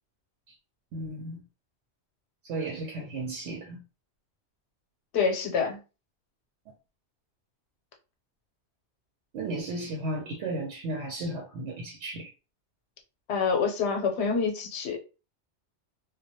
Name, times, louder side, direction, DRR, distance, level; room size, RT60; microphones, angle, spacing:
voice 1, 0.9-1.4 2.4-3.8 9.3-12.3, right 2 dB, 85° right, 0.9 m, -34 dB
voice 2, 5.1-5.8 13.3-15.0, left 5 dB, 80° left, 0.9 m, -26 dB
2.2 x 2.0 x 2.8 m
omnidirectional pair, 1.1 m